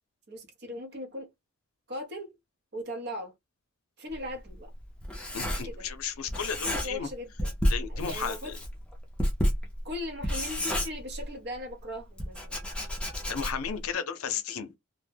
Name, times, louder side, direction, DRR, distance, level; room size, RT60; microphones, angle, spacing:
voice 1, 0.3-1.3 1.9-2.3 2.7-3.3 4.0-4.7 5.6-5.9 6.6-7.5 7.9-8.5 9.8-12.7, left 1 dB, 50° right, 0.8 m, -39 dB
Writing, 4.1-6.0 6.3-7.1 7.4-11.5 12.2-13.8, equal, 5° left, 0.5 m, -31 dB
voice 2, 5.3-7.1 7.7-8.5 13.3-14.7, left 7 dB, 80° left, 0.5 m, -34 dB
2.1 x 2.1 x 3.3 m
head